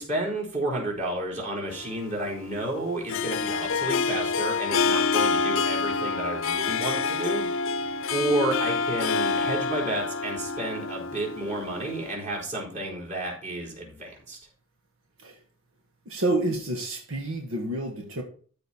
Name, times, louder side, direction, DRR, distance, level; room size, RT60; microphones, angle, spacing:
voice 1, 0.0-7.5 8.1-14.4, right 1 dB, 35° right, 4.3 m, -31 dB
Harp, 1.7-12.1, left 4 dB, 65° left, 0.6 m, -27 dB
voice 2, 16.1-18.2, right 2 dB, 75° right, 1.5 m, -28 dB
13.5 x 5.1 x 4.2 m
head